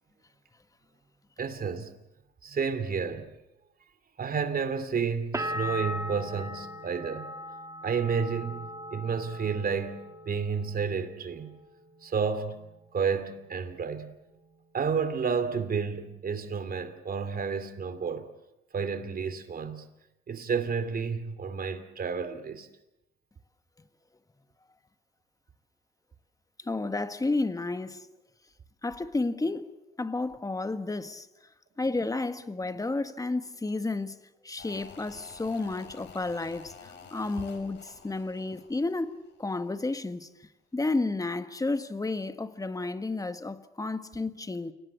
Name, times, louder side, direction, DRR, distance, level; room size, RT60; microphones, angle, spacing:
voice 1, 1.4-1.9 2.4-3.3 4.2-7.3 7.8-10.0 10.3-11.5 12.0-12.6 12.9-14.1 14.7-18.3 18.7-19.9 20.3-22.7, right 6 dB, 45° right, 2.7 m, -31 dB
sound 1, 5.3-11.0 11.3-12.0, left 1 dB, 15° right, 2.4 m, -38 dB
voice 2, 26.6-28.1 28.8-29.7 30.0-31.3 31.8-40.3 40.7-44.7, left 3 dB, 15° left, 1.5 m, -31 dB
sound 2, 34.6-39.7 40.0-40.1, left 6 dB, 65° left, 4.1 m, -50 dB
29.0 x 18.0 x 8.4 m
cardioid pair, 90°, 20 cm